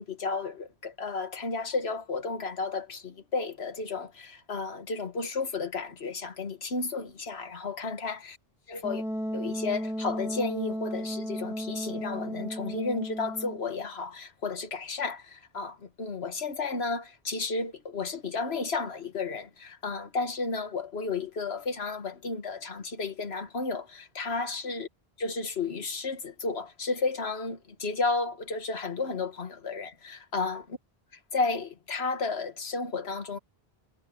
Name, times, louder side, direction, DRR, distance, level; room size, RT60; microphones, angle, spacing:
voice 1, 0.0-8.4 8.7-9.0 9.3-24.9 25.2-30.8 31.3-33.4, left 4 dB, 85° left, 1.8 m, -33 dB
Wind instrument woodwind instrument, 8.8-13.7, equal, 5° right, 2.2 m, -34 dB
omnidirectional pair, 1.0 m